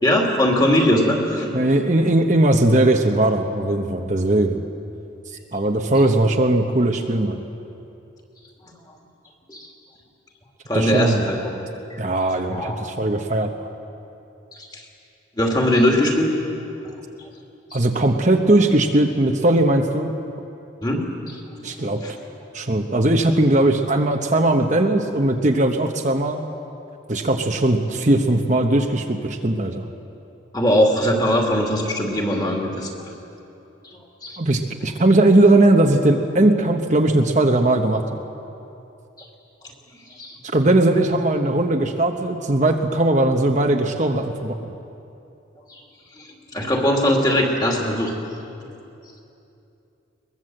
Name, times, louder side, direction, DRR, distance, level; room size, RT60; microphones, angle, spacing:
voice 1, 0.0-1.5 6.0-6.2 9.5-9.7 10.7-11.6 11.9-12.0 12.5-12.9 14.5-14.8 15.4-16.3 17.7-17.8 20.8-21.8 22.0-22.1 30.5-32.9 34.2-34.4 40.2-40.4 45.7-45.8 46.5-48.1, equal, 20° left, 0 dB, 2.8 m, -21 dB
voice 2, 1.5-4.6 5.5-7.4 10.7-11.2 12.0-13.7 17.7-20.1 21.6-22.0 22.5-26.4 27.1-29.8 34.4-38.2 40.4-44.7, right 1 dB, 40° right, 4 dB, 1.0 m, -19 dB
22.0 x 20.5 x 7.8 m, 2.8 s
head